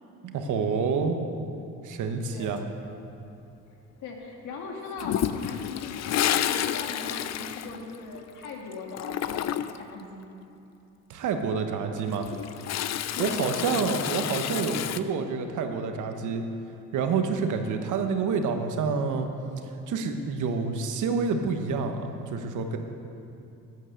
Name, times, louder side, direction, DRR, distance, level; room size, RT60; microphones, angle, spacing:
voice 1, 0.2-1.2 1.8-2.6 11.1-12.3 13.2-16.4 16.9-19.3 19.9-22.8, right 5 dB, 80° right, 5 dB, 1.3 m, -28 dB
voice 2, 2.3-2.7 3.7-10.3 13.1-13.7, left 3 dB, 85° left, 0 dB, 2.1 m, -39 dB
Toilet flush, 5.0-8.5 8.7-9.9 11.9-15.0, left 10 dB, 60° left, 0.5 m, -30 dB
12.5 x 9.1 x 6.7 m, 2.7 s
cardioid pair, 90°, 30 cm